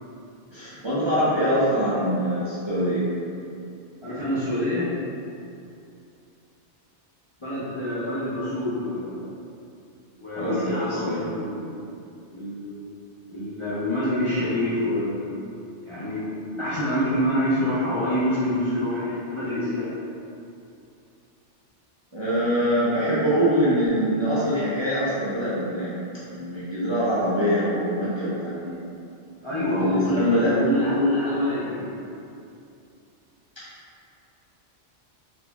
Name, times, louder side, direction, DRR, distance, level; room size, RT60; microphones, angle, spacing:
voice 1, 0.5-3.0 10.4-11.3 22.1-25.9 26.3-28.8 29.5-30.5, equal, 35° right, -11 dB, 0.5 m, -24 dB
voice 2, 4.0-4.9 7.4-9.3 10.2-11.7 12.3-12.9 13.3-15.3 15.8-19.9 29.4-31.9, left 1 dB, 35° left, -12 dB, 0.5 m, -26 dB
4.3 x 2.5 x 2.2 m, 2.6 s
omnidirectional pair, 1.2 m